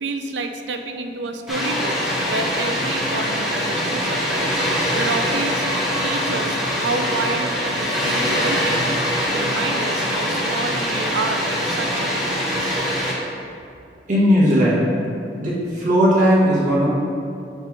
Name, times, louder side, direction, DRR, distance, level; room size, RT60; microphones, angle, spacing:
voice 1, 0.0-2.0 2.2-4.6 4.9-5.6 6.0-12.8, right 3 dB, 85° right, 6 dB, 0.5 m, -29 dB
Water, 1.5-13.1, equal, ahead, 1.1 m, -23 dB
voice 2, 14.1-14.8 15.3-16.9, equal, 50° right, -8 dB, 1.4 m, -17 dB
6.7 x 3.3 x 4.7 m, 2.5 s
head